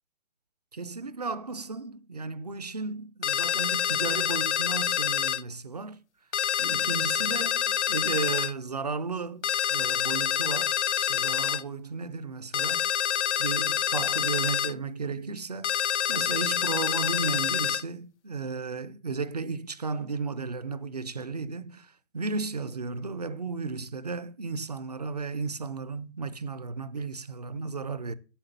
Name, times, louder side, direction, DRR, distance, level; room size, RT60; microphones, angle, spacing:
voice 1, 0.7-6.0 6.6-12.9 13.4-28.1, right 4 dB, 30° right, 0.5 m, -34 dB
sound 1, 3.2-5.4 6.3-8.5 9.4-11.6 12.5-14.7 15.6-17.8, left 9 dB, 60° left, 0.6 m, -27 dB
10.0 x 6.7 x 6.6 m
hypercardioid pair, 170°, 39 cm